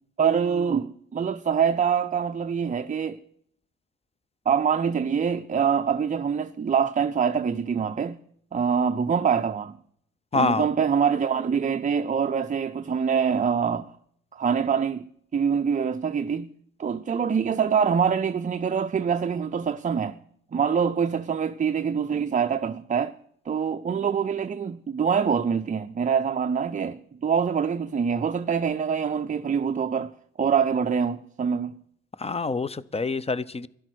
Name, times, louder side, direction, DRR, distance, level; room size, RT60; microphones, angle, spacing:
voice 1, 0.2-3.2 4.5-8.2 8.5-9.8 10.3-13.9 14.3-16.5 16.8-20.2 20.5-23.2 23.5-31.8, right 7 dB, 25° right, 0.5 m, -25 dB
voice 2, 10.3-10.7 32.2-33.7, left 4 dB, 20° left, 0.6 m, -26 dB
12.5 x 11.5 x 6.2 m
cardioid pair, 90°, 30 cm